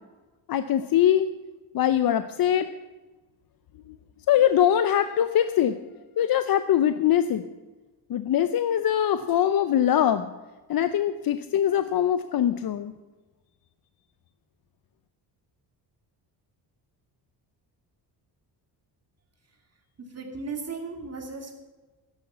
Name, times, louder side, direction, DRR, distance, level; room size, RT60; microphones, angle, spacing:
voice 1, 0.5-1.3 1.7-2.7 4.3-5.7 6.2-7.4 8.1-10.3 10.7-12.9, left 10 dB, 55° left, 11 dB, 0.6 m, -22 dB
voice 2, 20.0-21.5, right 4 dB, 35° right, 2 dB, 2.6 m, -36 dB
12.5 x 9.9 x 5.6 m, 1.2 s
cardioid pair, 85°, 44 cm